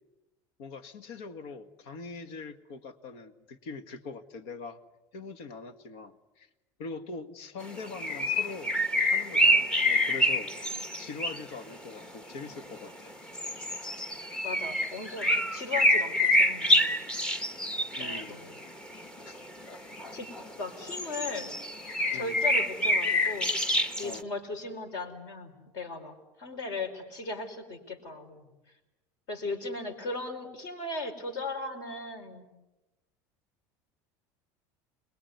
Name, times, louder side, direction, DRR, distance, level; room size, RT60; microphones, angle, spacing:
voice 1, 0.6-4.8 5.1-6.5 6.8-8.7 9.1-13.1 18.0-18.4 19.3-19.4 22.1-22.4 24.0-24.3, left 4 dB, 75° left, 10 dB, 1.9 m, -42 dB
sound 1, 7.6-11.6 12.0-12.1 12.7-12.8 13.3-20.5 20.8-24.2, equal, 10° left, 1.1 m, -27 dB
voice 2, 14.4-16.9 18.0-18.5 20.1-20.3 20.6-21.5 22.1-26.1 26.4-28.4 29.3-32.4, left 3 dB, 50° left, 8 dB, 4.8 m, -37 dB
28.0 x 21.5 x 9.5 m, 1.0 s
cardioid pair, 160°, 9 cm